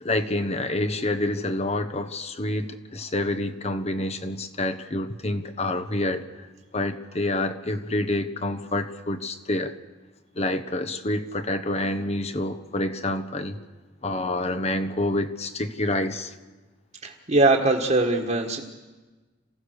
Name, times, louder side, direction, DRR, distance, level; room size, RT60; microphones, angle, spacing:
voice 1, 0.0-6.3 6.7-9.7 10.4-13.6 14.0-16.3, left 1 dB, 35° left, 1.2 m, -27 dB
voice 2, 17.0-18.6, right 2 dB, 40° right, 1.7 m, -21 dB
28.0 x 16.0 x 6.6 m
head